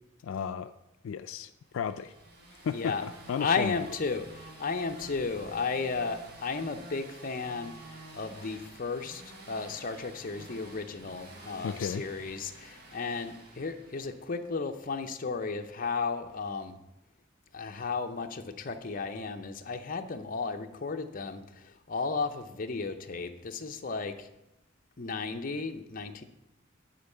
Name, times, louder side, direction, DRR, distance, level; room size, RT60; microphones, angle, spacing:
voice 1, 0.2-0.7 1.0-2.1 2.6-3.8 11.6-12.0, left 7 dB, 80° left, 10 dB, 0.3 m, -34 dB
sound 1, 1.7-14.6, right 1 dB, 50° right, 1.7 m, -50 dB
voice 2, 2.7-3.0 3.4-9.2 9.5-16.8 17.5-24.3 25.0-26.2, left 4 dB, 45° left, 6 dB, 0.6 m, -34 dB
10.5 x 4.5 x 6.6 m, 0.92 s
head